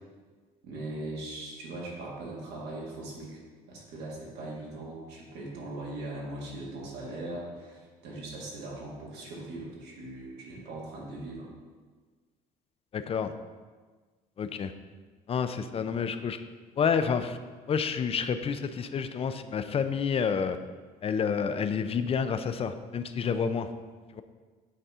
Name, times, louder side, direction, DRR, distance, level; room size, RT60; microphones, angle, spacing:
voice 1, 0.6-3.4 3.7-11.5 15.8-16.0, right 2 dB, 80° right, -3 dB, 1.9 m, -40 dB
voice 2, 12.9-13.3 14.4-14.7 15.3-16.4 16.8-17.4 17.7-20.6 21.0-23.7 24.1-24.2, left 6 dB, 35° left, 10 dB, 0.4 m, -29 dB
8.0 x 4.2 x 3.6 m, 1.4 s
cardioid pair, 110°, 17 cm